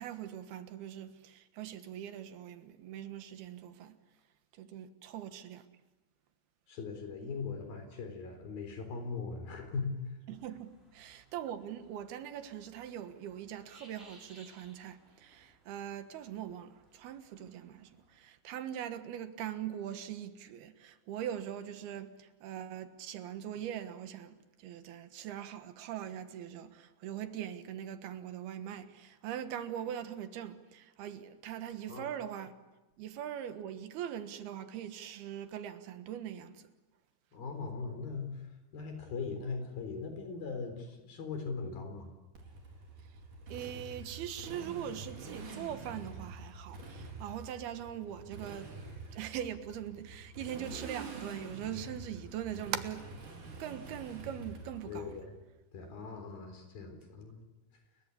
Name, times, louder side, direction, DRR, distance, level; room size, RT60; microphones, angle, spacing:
voice 1, 0.0-4.0 4.6-5.7 10.3-32.5 33.0-36.7 43.5-48.7 49.1-53.1 53.6-55.2, right 10 dB, 85° right, 3.4 m, -41 dB
voice 2, 6.7-10.2 31.9-32.1 37.3-38.4 38.7-42.1 54.9-55.4 55.7-57.5, left 4 dB, 70° left, 5.7 m, -40 dB
sound 1, 10.3-18.2, right 1 dB, 15° right, 5.9 m, -63 dB
Motorcycle, 42.3-55.2, right 3 dB, 55° right, 5.7 m, -47 dB
30.0 x 22.0 x 8.5 m
omnidirectional pair, 4.4 m